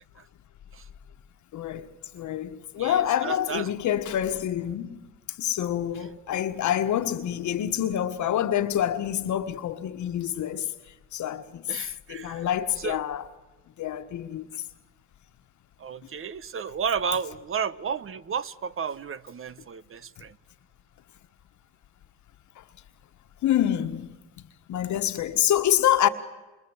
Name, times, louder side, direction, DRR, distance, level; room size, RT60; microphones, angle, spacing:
voice 1, 1.5-1.9 2.1-5.1 5.4-10.7 11.1-11.6 12.1-13.2 13.8-14.5 22.6-22.7 23.4-24.2 24.7-26.1, left 11 dB, 70° left, 1.5 m, -26 dB
voice 2, 2.8-3.7 11.7-12.4 12.8-13.0 15.8-20.3, right 6 dB, 45° right, 1.0 m, -32 dB
27.5 x 26.5 x 8.1 m
cardioid pair, 90°, 30 cm